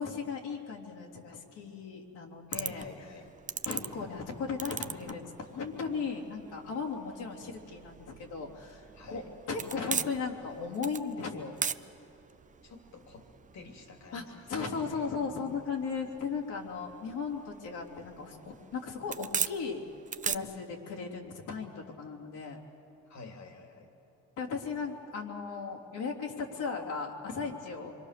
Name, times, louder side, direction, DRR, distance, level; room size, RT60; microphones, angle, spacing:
voice 1, 0.0-2.9 3.6-11.6 14.1-19.8 20.2-22.6 24.4-27.9, left 5 dB, 80° left, -3 dB, 3.4 m, -37 dB
voice 2, 2.5-3.3 8.9-9.3 12.6-13.3 13.5-14.5 14.9-15.1 23.1-23.9, left 3 dB, 65° left, 3 dB, 3.0 m, -49 dB
sound 1, 2.5-20.3, right 6 dB, 25° right, 0.5 m, -41 dB
26.5 x 23.5 x 6.8 m, 2.9 s
cardioid pair, 90°, 30 cm